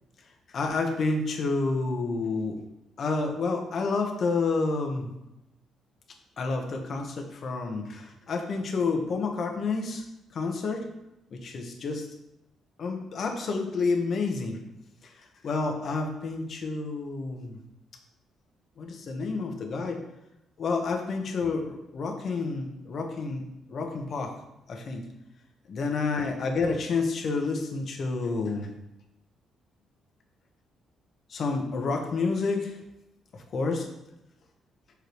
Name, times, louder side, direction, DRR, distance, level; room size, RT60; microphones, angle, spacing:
voice 1, 0.5-2.6 3.0-5.1 6.4-10.0 10.3-10.8 11.3-12.1 12.8-14.6 15.4-17.6 18.8-20.0 20.6-24.3 24.7-25.0 25.7-28.7 31.3-32.8 33.3-33.9, left 3 dB, 55° left, 3 dB, 1.1 m, -29 dB
6.5 x 5.2 x 3.1 m, 0.90 s
cardioid pair, 90°, 0 cm